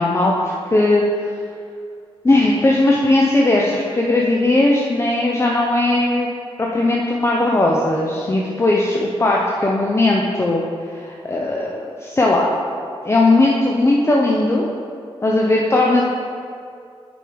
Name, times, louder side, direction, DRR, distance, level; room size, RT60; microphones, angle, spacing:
voice 1, 0.0-1.3 2.2-6.3 6.6-10.6 10.9-12.5 13.0-14.7 15.2-16.0, left 2 dB, 25° left, -2 dB, 0.8 m, -18 dB
8.7 x 5.2 x 5.2 m, 2.4 s
cardioid pair, 75°, 10 cm